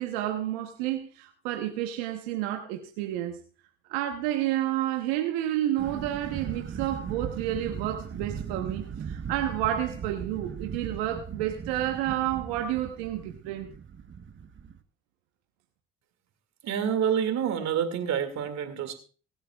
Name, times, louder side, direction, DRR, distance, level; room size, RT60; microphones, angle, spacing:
voice 1, 0.0-3.4 3.9-13.7, right 12 dB, 90° right, 1.2 m, -30 dB
sound 1, 5.8-14.8, right 7 dB, 40° right, 1.3 m, -38 dB
voice 2, 16.6-19.0, right 8 dB, 70° right, 2.4 m, -28 dB
25.0 x 9.1 x 2.4 m
hypercardioid pair, 55°, 29 cm